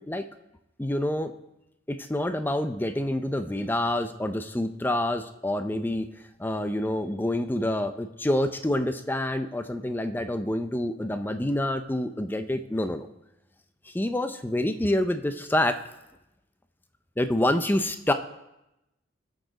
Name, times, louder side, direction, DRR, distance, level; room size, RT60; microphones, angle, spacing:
voice 1, 0.8-1.3 1.9-6.1 6.4-13.1 13.9-15.8 17.2-18.1, left 1 dB, 10° left, 9 dB, 0.5 m, -27 dB
19.0 x 6.4 x 3.9 m, 0.90 s
head